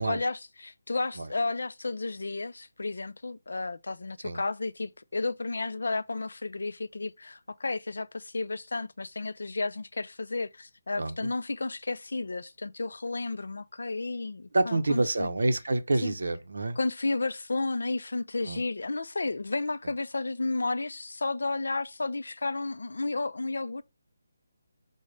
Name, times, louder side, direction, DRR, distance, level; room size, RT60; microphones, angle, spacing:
voice 1, 0.0-15.3 16.0-16.1 16.8-23.8, left 3 dB, 70° left, 0.4 m, -32 dB
voice 2, 11.0-11.3 14.5-16.8 18.5-18.6, right 2 dB, 65° right, 0.6 m, -27 dB
4.9 x 2.1 x 3.1 m
hypercardioid pair, 180°, 0 cm